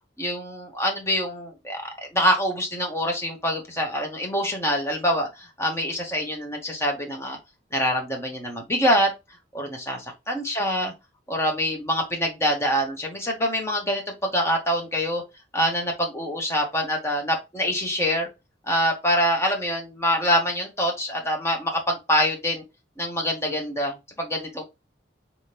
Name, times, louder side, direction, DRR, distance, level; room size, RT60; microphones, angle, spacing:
voice 1, 0.2-7.4 7.7-9.1 9.5-10.9 11.3-15.2 15.5-18.3 18.7-22.6 23.0-24.6, equal, 15° left, 1 dB, 1.2 m, -25 dB
4.3 x 3.6 x 2.9 m, 0.23 s
head